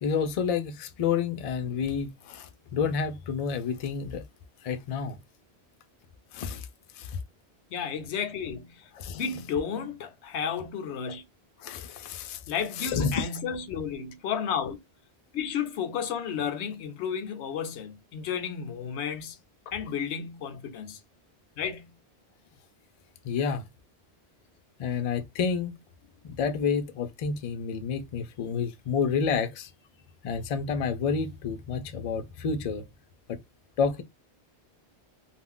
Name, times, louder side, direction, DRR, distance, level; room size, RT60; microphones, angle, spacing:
voice 1, 0.0-4.2 4.6-5.2 6.3-6.7 7.0-7.2 9.0-9.2 11.6-12.4 12.8-13.2 23.2-23.7 24.8-25.8 26.2-29.7 30.2-32.8 33.3-33.4 33.8-34.0, left 6 dB, 60° left, 0.4 m, -29 dB
voice 2, 7.7-11.2 12.5-14.8 15.3-19.4 19.7-21.0 21.6-22.0, left 7 dB, 85° left, 0.9 m, -32 dB
2.4 x 2.0 x 3.6 m
omnidirectional pair, 1.1 m